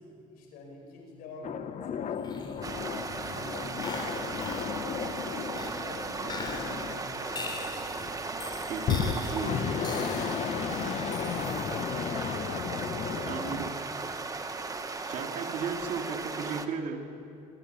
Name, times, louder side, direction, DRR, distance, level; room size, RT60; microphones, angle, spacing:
voice 1, 0.0-4.9 5.2-7.7 12.0-13.4, left 2 dB, 85° left, 2 dB, 5.2 m, -49 dB
sound 1, 1.4-7.8 8.8-13.7, left 7 dB, 55° left, 1.1 m, -34 dB
sound 2, 2.2-12.1, left 2 dB, 30° left, 3.5 m, -42 dB
sound 3, 2.6-16.7, right 3 dB, 25° right, 1.5 m, -36 dB
voice 2, 8.7-9.6 13.2-13.8 15.1-17.1, right 6 dB, 65° right, 4 dB, 2.8 m, -35 dB
26.0 x 13.5 x 9.6 m, 2.6 s
cardioid pair, 90°, 15 cm